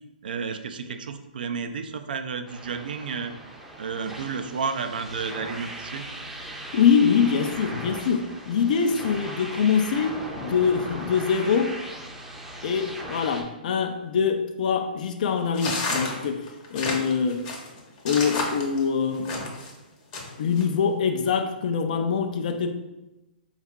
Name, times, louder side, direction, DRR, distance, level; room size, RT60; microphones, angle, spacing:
voice 1, 0.2-3.3 3.8-6.1, right 5 dB, 70° right, 0.3 m, -31 dB
sound 1, 2.5-13.4, right 1 dB, 5° right, 0.5 m, -39 dB
voice 2, 6.7-11.8 12.6-17.5 18.0-19.3 20.4-22.7, left 6 dB, 60° left, 0.4 m, -24 dB
sound 2, 15.5-19.7 20.1-20.6, left 3 dB, 40° left, 0.8 m, -30 dB
4.3 x 2.4 x 3.5 m
hypercardioid pair, 125°, 5 cm